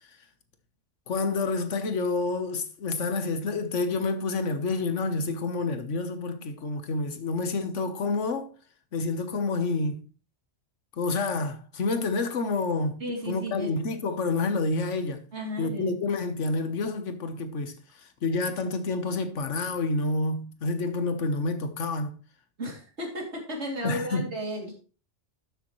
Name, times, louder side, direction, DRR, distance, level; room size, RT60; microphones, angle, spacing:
voice 1, 1.1-8.5 8.9-10.0 11.0-13.0 13.3-15.2 15.6-22.1 23.8-24.3, left 3 dB, 80° left, 1.5 m, -28 dB
voice 2, 13.0-13.7 15.3-15.9 22.6-24.7, equal, 70° right, 3.1 m, -34 dB
12.5 x 7.0 x 3.1 m
omnidirectional pair, 1.2 m